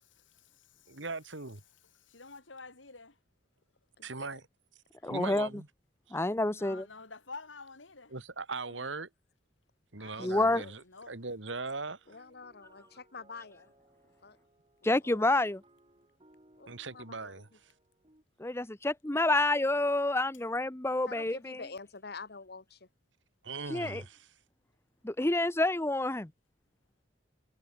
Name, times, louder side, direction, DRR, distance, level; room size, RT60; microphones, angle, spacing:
voice 1, 0.2-1.1 1.8-3.2 6.5-8.1 10.0-11.2, left 4 dB, 90° left, 4.4 m, -50 dB
voice 2, 0.9-1.6 4.0-4.4 5.0-5.7 6.1-6.2 8.1-9.1 9.9-12.1 16.7-17.7 23.4-24.3, right 3 dB, 80° right, 2.5 m, -40 dB
voice 3, 4.0-4.4 8.7-8.8 10.2-10.7 12.1-13.7 14.2-14.4 15.0-15.3 16.6-17.4 21.0-22.9, left 4 dB, 60° left, 1.4 m, -47 dB
voice 4, 5.0-5.5 6.1-6.9 10.2-10.6 14.8-15.6 18.4-21.6 23.7-24.0 25.0-26.3, left 2 dB, 15° left, 0.8 m, -28 dB
sound 1, 11.0-18.2, right 1 dB, 30° right, 7.6 m, -65 dB
head